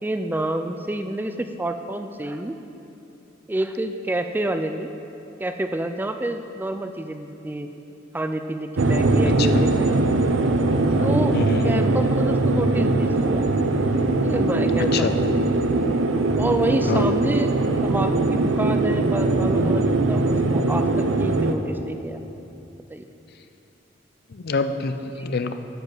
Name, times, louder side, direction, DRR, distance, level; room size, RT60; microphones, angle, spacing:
voice 1, 0.0-2.6 3.5-4.9 5.4-7.7 8.1-10.0 11.0-11.4 11.6-13.4 14.2-15.4 16.4-17.5 17.8-22.2 22.9-23.0, right 1 dB, 10° right, 7 dB, 0.3 m, -28 dB
sound 1, 8.8-21.5, right 2 dB, 70° right, 0.6 m, -21 dB
voice 2, 11.3-11.8 14.9-15.1 16.9-17.1 24.3-25.5, left 4 dB, 55° left, 9 dB, 0.5 m, -26 dB
10.5 x 5.3 x 7.6 m, 2.9 s
head